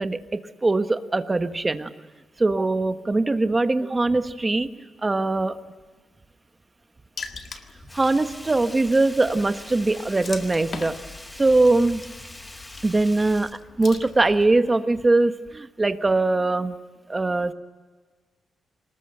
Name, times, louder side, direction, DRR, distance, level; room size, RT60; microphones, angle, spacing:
voice 1, 0.0-1.9 2.4-5.6 7.9-11.0 11.3-12.1 12.8-13.5 13.8-16.8 17.1-17.5, right 2 dB, 20° right, 9 dB, 1.2 m, -22 dB
Water / Splash splatter, 7.2-14.6, left 5 dB, 45° left, 1.8 m, -42 dB
Sink (filling or washing), 7.9-14.4 14.7-14.8, left 1 dB, 10° left, 1.1 m, -43 dB
25.0 x 20.0 x 7.9 m, 1.4 s
cardioid pair, 125°, 0 cm